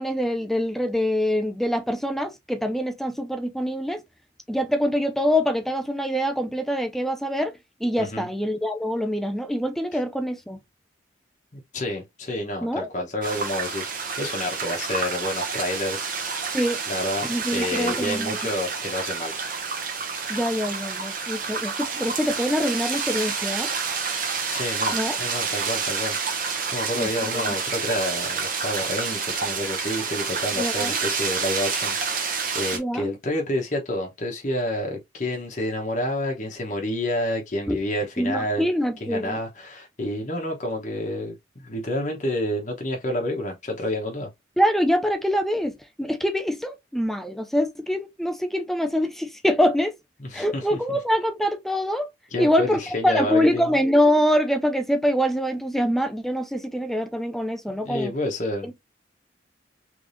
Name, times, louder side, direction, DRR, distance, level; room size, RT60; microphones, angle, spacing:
voice 1, 0.0-4.0 4.5-7.5 7.8-10.6 12.6-12.9 16.5-16.8 17.2-18.4 20.3-23.7 24.9-25.2 27.0-27.1 27.3-27.6 30.6-31.0 32.7-33.1 37.7-37.8 38.2-39.4 44.6-49.9 50.3-52.1 52.4-58.1 58.6-58.8, equal, ahead, 0.3 m, -24 dB
voice 2, 8.0-8.3 9.9-10.0 11.5-16.3 16.9-19.3 24.5-38.7 39.0-44.3 50.2-51.0 52.3-53.7 57.7-58.7, left 1 dB, 40° left, 1.0 m, -29 dB
sound 1, 13.2-32.8, right 5 dB, 45° right, 0.8 m, -29 dB
3.4 x 3.3 x 2.6 m
head